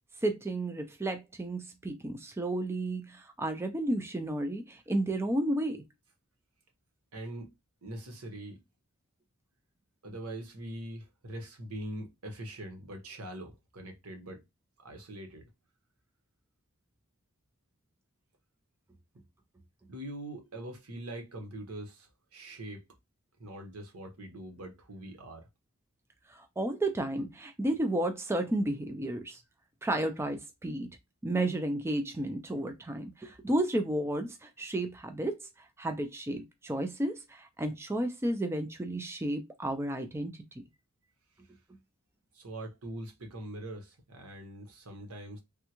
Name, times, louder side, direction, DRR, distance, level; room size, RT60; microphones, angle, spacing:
voice 1, 0.2-5.8 26.3-29.4 29.8-30.9 31.2-35.4 35.8-40.6, right 1 dB, 10° right, 0.4 m, -32 dB
voice 2, 7.1-7.5 7.8-8.6 10.0-14.4 14.8-15.5 19.9-22.9 23.4-25.5 42.3-45.4, right 1 dB, 85° right, 1.1 m, -43 dB
3.5 x 2.2 x 2.9 m
head